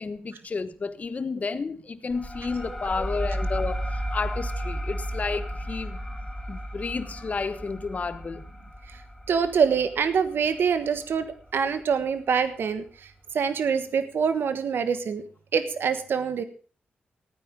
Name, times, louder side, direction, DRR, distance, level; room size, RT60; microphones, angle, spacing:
voice 1, 0.0-6.2 6.5-8.4, left 4 dB, 40° left, 1.2 m, -31 dB
sound 1, 2.1-11.3, equal, 5° left, 2.6 m, -33 dB
voice 2, 9.3-15.2 15.5-16.4, right 6 dB, 75° right, 1.3 m, -25 dB
15.5 x 9.4 x 5.4 m
wide cardioid pair, 100°, 4 cm